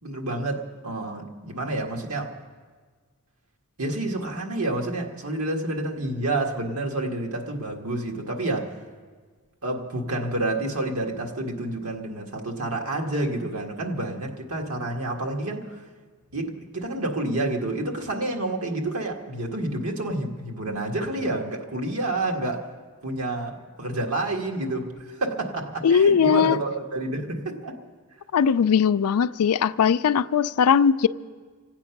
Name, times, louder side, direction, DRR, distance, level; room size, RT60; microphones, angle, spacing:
voice 1, 0.0-2.3 3.8-8.7 9.6-15.9 16.3-22.7 23.0-27.7, right 2 dB, 80° right, 1.8 m, -29 dB
voice 2, 25.8-26.6 28.3-31.1, left 7 dB, 85° left, 0.4 m, -19 dB
25.5 x 8.7 x 5.9 m
head